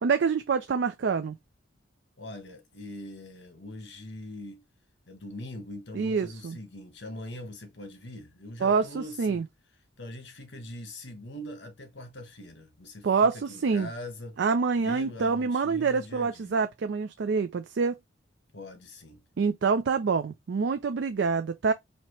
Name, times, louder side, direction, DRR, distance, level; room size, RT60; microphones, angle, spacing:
voice 1, 0.0-1.4 5.9-6.6 8.6-9.4 13.0-13.9 14.4-17.9 19.4-21.7, right 5 dB, 65° right, 0.4 m, -26 dB
voice 2, 2.2-4.7 5.1-9.4 10.0-14.4 14.8-16.6 18.5-19.2, left 1 dB, 65° left, 1.3 m, -42 dB
4.3 x 2.8 x 3.1 m
head